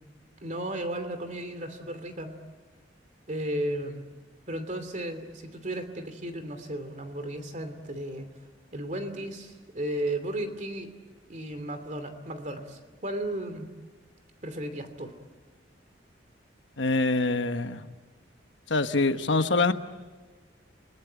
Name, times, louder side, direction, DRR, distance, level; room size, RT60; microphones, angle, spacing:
voice 1, 0.4-2.4 3.3-4.0 4.5-8.3 8.7-10.9 11.3-13.7 14.4-15.1, right 1 dB, 40° right, 8 dB, 2.7 m, -34 dB
voice 2, 16.8-17.8 18.7-19.7, left 3 dB, 75° left, 9 dB, 1.2 m, -24 dB
29.5 x 20.0 x 9.2 m, 1.3 s
head